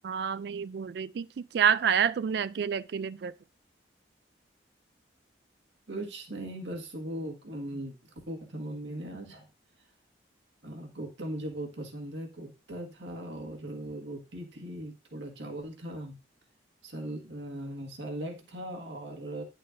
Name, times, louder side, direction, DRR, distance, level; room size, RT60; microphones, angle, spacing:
voice 1, 0.0-3.3, right 7 dB, 60° right, 0.3 m, -28 dB
voice 2, 5.9-7.9 8.3-9.5 10.6-16.2 16.8-19.4, right 1 dB, 75° right, 1.8 m, -39 dB
10.5 x 6.5 x 2.6 m
head